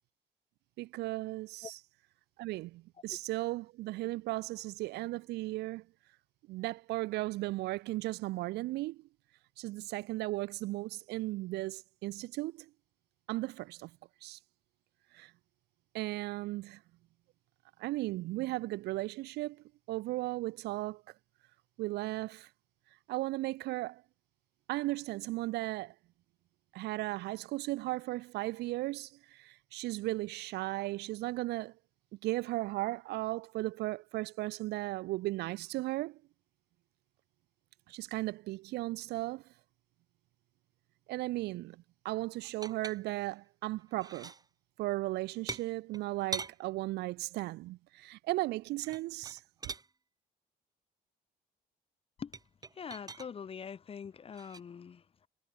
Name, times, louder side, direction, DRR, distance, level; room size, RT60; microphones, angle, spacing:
voice 1, 0.8-1.8 2.4-5.8 6.5-9.0 9.6-12.7 13.3-13.9 14.2-14.4 15.1-15.3 15.9-16.8 17.8-21.0 21.8-22.5 23.1-24.0 24.7-25.9 26.7-31.7 32.2-36.2 37.9-39.4 41.1-44.3 44.8-49.4, right 19 dB, 85° right, 1.4 m, -36 dB
sound 1, 42.4-43.4 43.8-44.4 45.5-46.6 48.8-49.9 52.3-53.3 54.3-54.6, right 4 dB, 20° right, 2.8 m, -42 dB
voice 2, 52.7-55.3, left 7 dB, 35° left, 1.2 m, -44 dB
cardioid pair, 110°, 17 cm